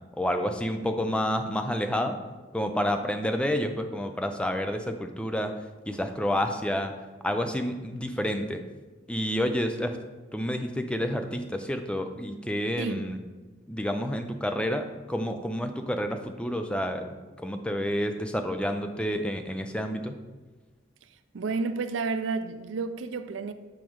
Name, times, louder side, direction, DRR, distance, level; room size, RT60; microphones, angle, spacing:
voice 1, 0.2-2.2 2.5-5.5 5.9-6.9 7.2-8.6 9.1-10.0 10.3-13.2 13.7-17.1 17.4-20.2, equal, 5° left, 0.4 m, -29 dB
voice 2, 21.3-23.5, right 4 dB, 80° right, 0.4 m, -31 dB
7.2 x 4.9 x 3.0 m
head